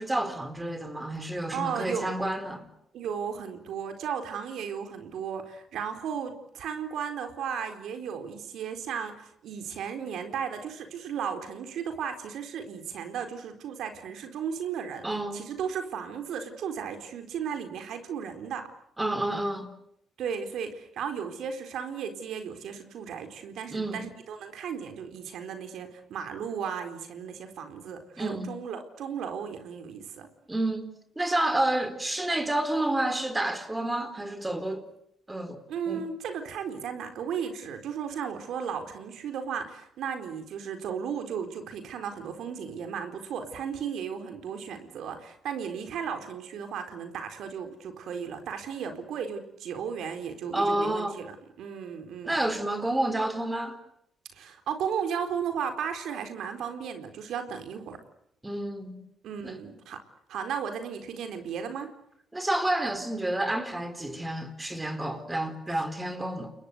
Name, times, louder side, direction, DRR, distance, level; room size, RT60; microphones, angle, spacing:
voice 1, 0.0-2.7 15.0-15.4 19.0-19.7 23.7-24.1 28.2-28.5 30.5-34.9 35.3-36.0 50.5-51.2 52.2-53.8 58.4-59.0 59.4-59.6 62.3-66.5, right 1 dB, 15° right, 4.2 m, -29 dB
voice 2, 1.5-2.1 2.9-15.1 15.3-18.7 20.2-30.3 35.7-52.4 54.3-58.0 59.2-60.0 60.3-61.9, right 7 dB, 75° right, 4.3 m, -35 dB
29.5 x 22.0 x 8.1 m
cardioid pair, 90°, 0 cm